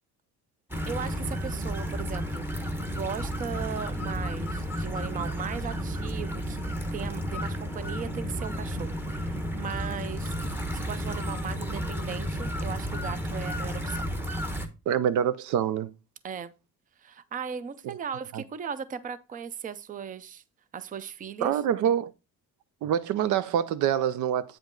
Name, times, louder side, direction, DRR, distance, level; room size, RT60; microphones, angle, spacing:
sound 1, 0.7-14.7, equal, 5° right, 1.0 m, -32 dB
voice 1, 0.9-6.6 6.9-14.0 16.2-16.5 17.0-20.4 20.7-21.6, right 7 dB, 25° right, 0.5 m, -37 dB
voice 2, 14.9-15.9 17.8-17.9 18.3-18.4 21.4-22.1 22.8-24.6, right 9 dB, 70° right, 0.6 m, -26 dB
8.5 x 5.1 x 3.8 m
cardioid pair, 150°, 31 cm